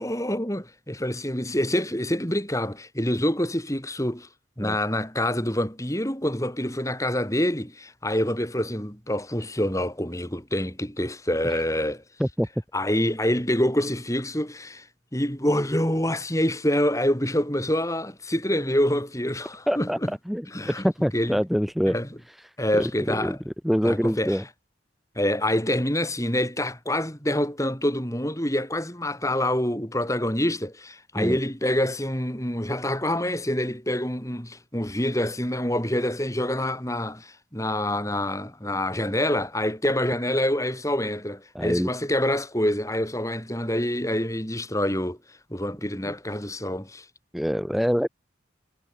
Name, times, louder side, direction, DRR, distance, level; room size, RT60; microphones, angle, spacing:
voice 1, 0.0-4.3 4.6-12.0 12.7-14.9 15.1-20.1 20.5-20.8 21.1-21.4 21.9-22.1 22.6-23.4 23.8-24.4 25.2-45.2 45.5-47.1, left 1 dB, 15° left, 7.2 m, -26 dB
voice 2, 19.7-20.0 20.3-22.0 22.8-24.4 31.1-31.4 41.5-41.9 46.1-46.2 47.3-48.1, equal, ahead, 4.3 m, -25 dB
head